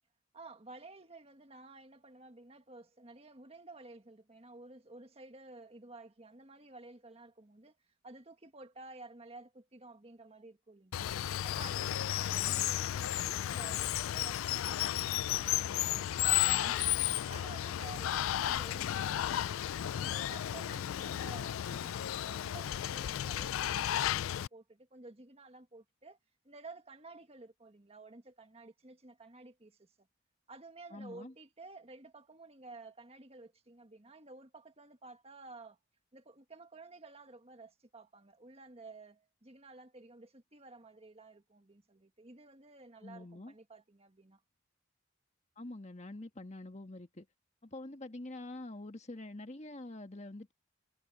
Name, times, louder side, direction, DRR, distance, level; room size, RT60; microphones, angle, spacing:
voice 1, 0.3-7.8 8.0-16.9 17.3-19.7 19.9-26.2 26.4-30.1 30.5-35.8 36.1-44.4, right 3 dB, 30° right, 1.7 m, -53 dB
Water, 10.9-24.5, left 12 dB, 85° left, 0.3 m, -33 dB
voice 2, 16.5-16.8 30.9-31.3 43.0-43.5 45.6-47.3 47.6-50.5, left 2 dB, 35° left, 1.5 m, -46 dB
head